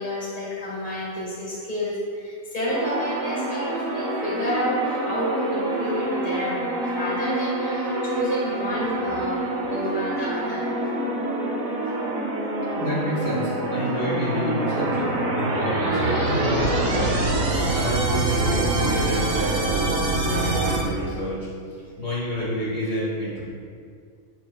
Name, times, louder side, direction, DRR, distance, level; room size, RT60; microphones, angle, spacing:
voice 1, 0.0-10.7, equal, 30° left, -7 dB, 2.2 m, -29 dB
sound 1, 2.7-20.8, right 2 dB, 65° right, 1.4 m, -26 dB
voice 2, 12.7-15.1 15.8-17.2 17.7-19.9 20.2-21.5 22.0-23.4, equal, 60° left, -8 dB, 2.1 m, -28 dB
9.1 x 7.7 x 2.4 m, 2.2 s
omnidirectional pair, 1.5 m